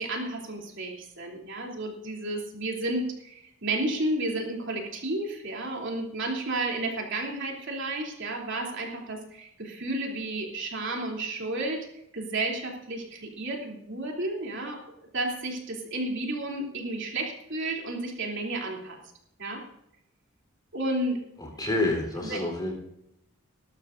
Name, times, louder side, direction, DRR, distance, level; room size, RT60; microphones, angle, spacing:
voice 1, 0.0-11.8 12.1-14.8 15.1-19.0 19.4-19.6 20.7-21.2 22.2-22.4, right 2 dB, 65° right, 0 dB, 3.2 m, -32 dB
voice 2, 21.4-22.7, left 2 dB, 20° left, 1 dB, 3.9 m, -28 dB
20.0 x 12.5 x 2.6 m, 0.78 s
head